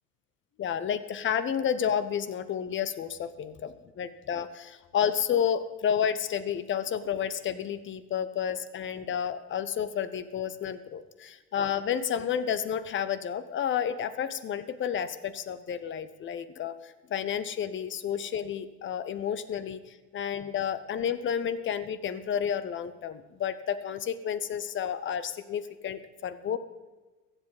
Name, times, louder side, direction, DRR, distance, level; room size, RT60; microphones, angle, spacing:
voice 1, 0.6-3.5 4.0-19.8 20.1-26.6, left 8 dB, 25° left, 13 dB, 0.9 m, -31 dB
22.5 x 8.1 x 4.1 m, 1.3 s
figure-of-eight pair, 75°, 48 cm